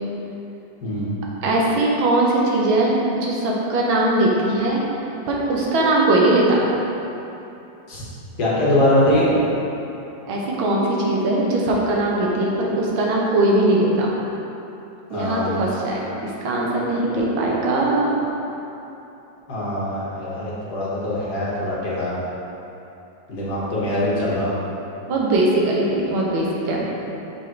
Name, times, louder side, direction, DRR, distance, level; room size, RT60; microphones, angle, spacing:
voice 1, 0.8-1.1 7.9-8.0 8.4-9.3 15.1-15.6 19.5-22.1 23.3-24.5, left 1 dB, 55° left, -7 dB, 1.7 m, -22 dB
voice 2, 1.4-4.8 5.3-6.6 10.3-14.1 15.1-18.2 25.0-26.9, right 2 dB, 90° right, -3 dB, 1.7 m, -20 dB
6.1 x 4.0 x 4.5 m, 2.9 s
omnidirectional pair, 2.1 m